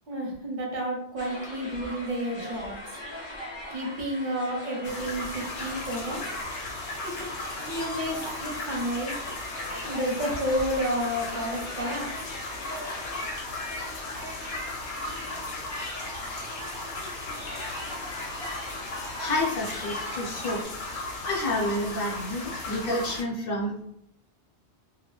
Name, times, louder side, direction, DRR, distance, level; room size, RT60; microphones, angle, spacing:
voice 1, 0.1-2.8 3.7-6.3 7.0-7.3 7.6-9.2 9.8-12.2, equal, 45° right, -1 dB, 0.8 m, -31 dB
sound 1, 1.2-20.6, left 1 dB, 40° left, 0.4 m, -40 dB
sound 2, 4.8-23.2, left 2 dB, 85° left, 0.9 m, -36 dB
voice 2, 19.2-20.6 21.2-23.8, left 1 dB, 60° left, -2 dB, 0.8 m, -29 dB
2.3 x 2.1 x 2.9 m, 0.76 s
omnidirectional pair, 1.2 m